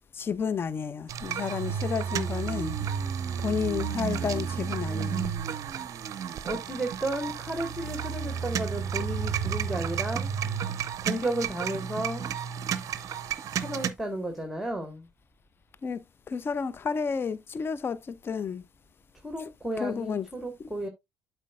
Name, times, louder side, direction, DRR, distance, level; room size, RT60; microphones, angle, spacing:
voice 1, 0.1-2.8 3.4-5.3 15.8-18.6 19.8-20.3, left 6 dB, 30° left, 0.5 m, -31 dB
sound 1, 1.1-13.9, right 7 dB, 45° right, 0.6 m, -32 dB
voice 2, 6.4-10.3 11.0-12.3 13.5-15.1 19.2-20.9, right 1 dB, ahead, 1.4 m, -33 dB
12.0 x 4.4 x 2.3 m
figure-of-eight pair, 50°, 8 cm